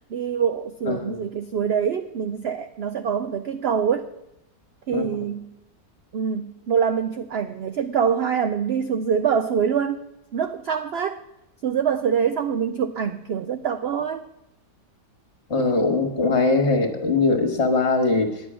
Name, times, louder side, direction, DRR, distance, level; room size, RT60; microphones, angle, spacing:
voice 1, 0.1-4.1 4.9-5.5 6.1-10.1 10.3-11.2 11.6-14.2, right 7 dB, 65° right, 8 dB, 0.6 m, -25 dB
voice 2, 0.9-1.2 4.9-5.0 15.5-18.4, left 3 dB, 45° left, 5 dB, 1.7 m, -21 dB
10.0 x 9.3 x 6.1 m, 0.85 s
omnidirectional pair, 1.6 m